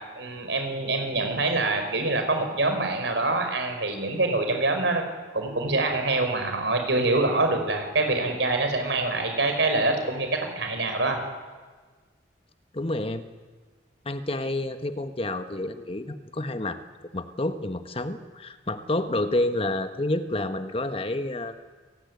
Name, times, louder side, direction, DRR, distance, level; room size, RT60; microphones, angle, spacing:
voice 1, 0.2-5.0 5.3-11.2, right 2 dB, 70° right, 5 dB, 5.2 m, -25 dB
voice 2, 12.7-13.2 14.0-21.5, left 1 dB, 30° left, 9 dB, 1.3 m, -29 dB
28.0 x 17.5 x 9.6 m, 1.4 s
head